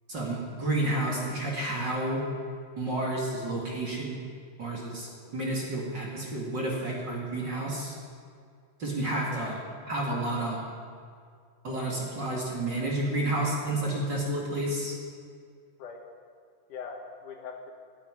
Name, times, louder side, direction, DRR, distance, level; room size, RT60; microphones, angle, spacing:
voice 1, 0.1-2.2 2.8-4.2 4.6-8.0 8.8-9.6 9.9-10.6 11.6-15.0, right 1 dB, 35° right, -2 dB, 2.5 m, -30 dB
voice 2, 16.7-17.8, left 5 dB, 70° left, 3 dB, 2.8 m, -42 dB
15.0 x 9.7 x 9.6 m, 2.2 s
omnidirectional pair, 4.0 m